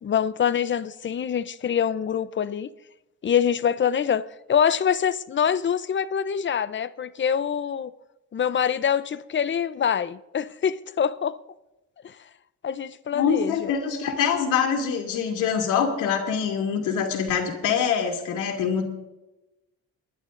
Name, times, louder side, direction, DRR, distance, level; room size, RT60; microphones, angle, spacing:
voice 1, 0.0-2.7 3.2-7.9 8.3-11.4 12.0-12.2 12.6-13.7, left 8 dB, 40° left, 0.7 m, -25 dB
voice 2, 13.1-18.9, left 7 dB, 90° left, 2.6 m, -24 dB
28.5 x 11.0 x 2.6 m
cardioid pair, 90°, 30 cm